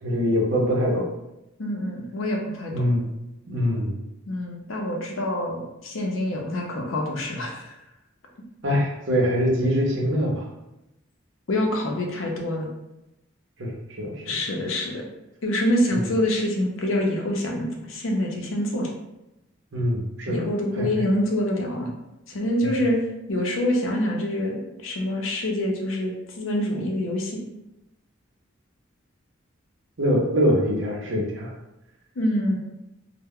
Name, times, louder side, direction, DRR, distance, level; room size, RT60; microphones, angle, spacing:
voice 1, 0.0-1.1 2.7-3.1 3.5-3.9 8.6-10.5 13.6-14.3 15.9-16.1 19.7-20.5 20.8-20.9 22.6-22.7 30.0-31.5, equal, 60° right, -2 dB, 0.7 m, -23 dB
voice 2, 1.6-3.0 4.3-7.8 11.5-12.7 14.3-15.0 15.4-18.9 20.3-21.9 22.3-23.0 23.3-27.4 32.2-32.6, left 1 dB, 75° left, 0 dB, 0.6 m, -26 dB
2.1 x 2.1 x 3.5 m, 0.91 s
head